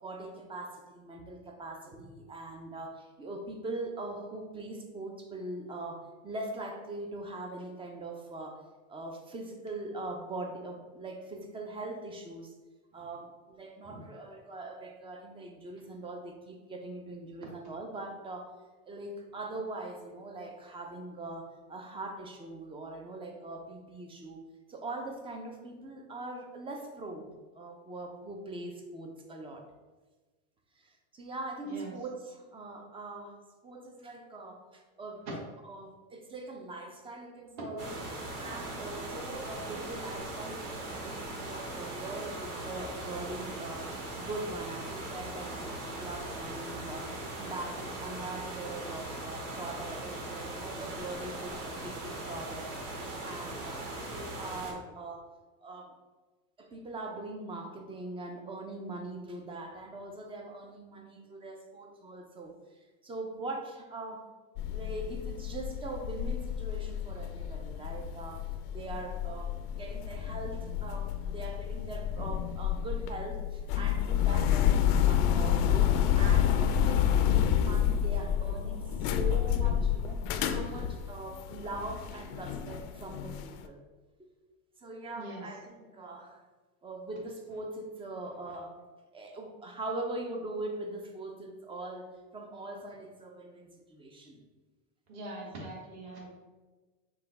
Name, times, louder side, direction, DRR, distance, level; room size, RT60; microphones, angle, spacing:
voice 1, 0.0-8.6 8.9-12.5 12.9-18.5 18.8-29.7 30.8-35.3 35.6-38.0 38.4-43.9 44.2-55.2 55.6-56.0 56.6-62.5 63.0-64.3 64.7-83.8 84.2-84.3 84.8-86.4 86.8-88.8 89.1-94.4, right 2 dB, 15° right, 3 dB, 0.4 m, -42 dB
sound 1, 37.8-54.7, right 2 dB, 85° right, 1.4 m, -39 dB
sound 2, 64.6-83.5, left 9 dB, 50° left, 0.5 m, -29 dB
voice 2, 85.1-85.5 95.1-96.4, right 1 dB, 40° right, -3 dB, 1.5 m, -43 dB
5.4 x 2.3 x 4.0 m, 1.3 s
supercardioid pair, 120°, 43 cm